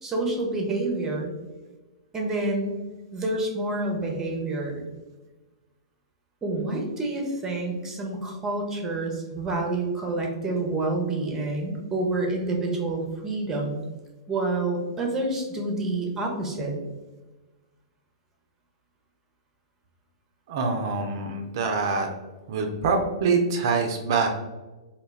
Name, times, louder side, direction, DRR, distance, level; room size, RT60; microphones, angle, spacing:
voice 1, 0.0-1.3 2.1-2.8 3.1-4.8 6.4-13.8 14.3-16.8, right 2 dB, 15° right, 0 dB, 0.7 m, -28 dB
voice 2, 20.5-22.1 22.5-24.3, right 4 dB, 55° right, 4 dB, 0.4 m, -25 dB
2.2 x 2.2 x 3.3 m, 1.2 s
hypercardioid pair, 115°, 3 cm